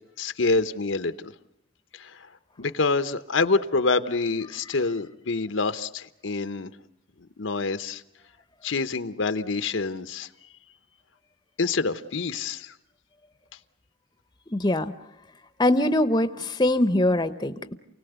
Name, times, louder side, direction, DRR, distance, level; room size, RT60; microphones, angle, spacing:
voice 1, 0.2-1.3 1.9-2.3 2.6-6.7 7.4-8.0 8.6-10.3 11.6-12.7, left 3 dB, 80° left, 11 dB, 0.9 m, -26 dB
voice 2, 14.5-14.9 15.6-17.7, left 1 dB, 20° left, 11 dB, 0.8 m, -22 dB
29.0 x 18.0 x 8.1 m, 0.87 s
head